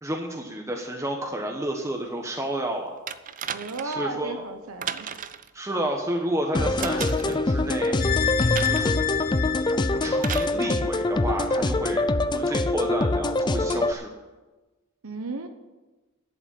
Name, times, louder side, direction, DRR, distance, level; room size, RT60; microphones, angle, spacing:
voice 1, 0.0-2.9 3.8-4.4 5.5-7.9 8.6-8.9 9.9-12.0 12.3-14.1, right 1 dB, 15° right, 1 dB, 1.1 m, -30 dB
sound 1, 3.1-4.0 4.8-5.5 6.8-7.4 8.5-9.0 10.2-10.6 11.6-11.7, right 8 dB, 40° right, 0.5 m, -34 dB
voice 2, 3.5-5.1 15.0-15.5, right 3 dB, 80° right, 7 dB, 0.9 m, -34 dB
sound 2, 6.5-13.9, left 2 dB, 20° left, 0.4 m, -24 dB
sound 3, 8.0-11.2 11.6-11.7, left 6 dB, 40° left, 0.8 m, -27 dB
11.0 x 8.0 x 8.7 m, 1.2 s
head